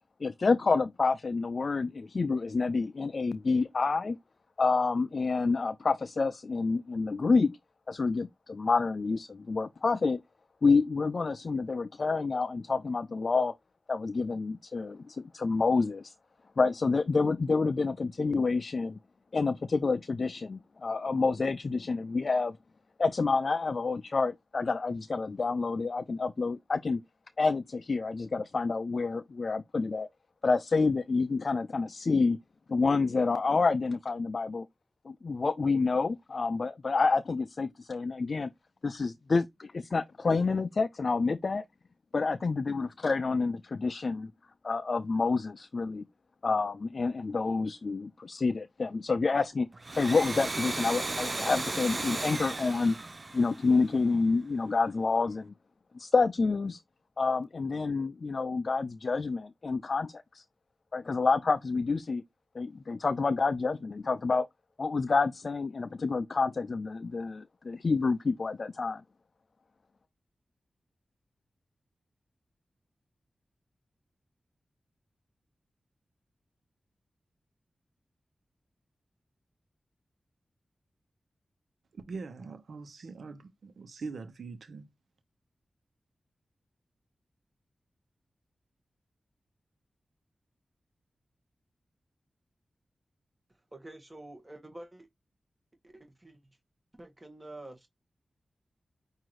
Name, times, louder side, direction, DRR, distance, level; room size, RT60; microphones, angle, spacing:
voice 1, 0.2-4.2 4.6-7.5 7.9-10.2 10.6-13.5 13.9-16.1 16.6-19.0 19.3-22.6 23.0-27.0 27.4-30.1 30.4-32.4 32.7-34.7 35.1-38.5 38.8-41.6 42.1-44.3 44.6-46.0 46.4-49.7 49.9-53.0 53.3-55.5 55.9-56.8 57.2-60.4 60.9-62.2 62.5-64.5 64.8-69.0, left 4 dB, 60° left, 0.4 m, -28 dB
Domestic sounds home sounds, 49.7-54.2, right 2 dB, 40° right, 0.4 m, -35 dB
voice 2, 81.9-84.9, right 4 dB, 85° right, 1.0 m, -42 dB
voice 3, 93.7-95.1 95.8-96.4 96.9-97.9, right 1 dB, 20° right, 1.4 m, -48 dB
6.1 x 2.7 x 3.0 m
cardioid pair, 60°, 0 cm